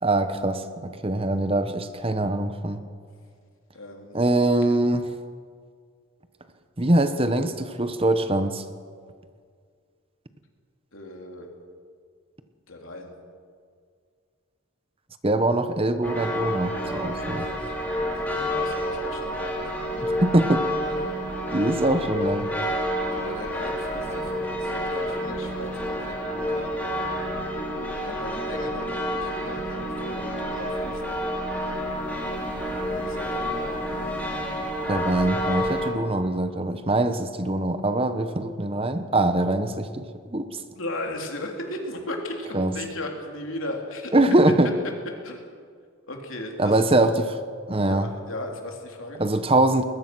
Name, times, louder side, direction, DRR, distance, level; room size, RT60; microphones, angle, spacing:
voice 1, 0.0-2.8 4.1-5.1 6.8-8.6 15.2-17.5 20.0-20.7 21.5-22.5 34.9-40.1 40.3-40.6 42.5-42.7 44.1-44.7 46.6-47.4 47.7-48.1 49.2-49.8, right 1 dB, 25° right, 9 dB, 1.0 m, -23 dB
voice 2, 3.7-4.2 4.7-4.8 10.9-11.5 12.7-13.1 18.0-20.1 23.1-26.7 28.0-31.0 32.9-33.7 40.7-44.1 45.2-45.4 46.1-46.8 47.8-49.2, left 1 dB, 75° left, 1 dB, 3.5 m, -37 dB
sound 1, 16.0-35.9, equal, 10° left, 3.0 m, -29 dB
21.0 x 21.0 x 6.2 m, 2.1 s
head